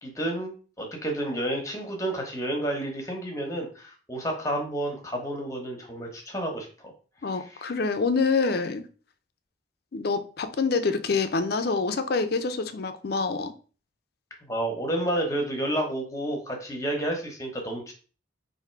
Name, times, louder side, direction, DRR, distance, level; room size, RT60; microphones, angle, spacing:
voice 1, 0.0-6.7 7.5-7.7 14.5-17.9, right 1 dB, 15° left, 0.9 m, -30 dB
voice 2, 7.2-8.8 9.9-13.5, left 4 dB, 50° left, 0.4 m, -26 dB
3.6 x 2.6 x 4.4 m
head